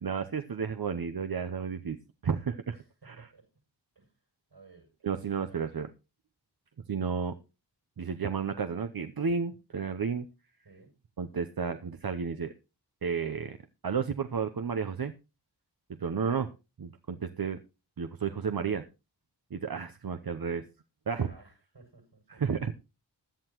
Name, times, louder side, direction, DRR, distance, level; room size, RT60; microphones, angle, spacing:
voice 1, 0.0-2.0 2.2-2.8 3.0-3.3 5.0-5.9 6.9-7.4 8.0-10.3 11.2-12.5 13.0-13.6 13.8-15.1 16.0-16.5 16.8-17.6 18.0-18.9 19.5-20.7 21.1-21.3 22.3-22.7, right 6 dB, 55° right, 9 dB, 0.8 m, -32 dB
voice 2, 4.5-5.6 10.6-10.9 21.2-22.4, right 3 dB, 75° right, 2 dB, 7.7 m, -56 dB
16.5 x 11.0 x 3.0 m, 0.29 s
wide cardioid pair, 50°, 42 cm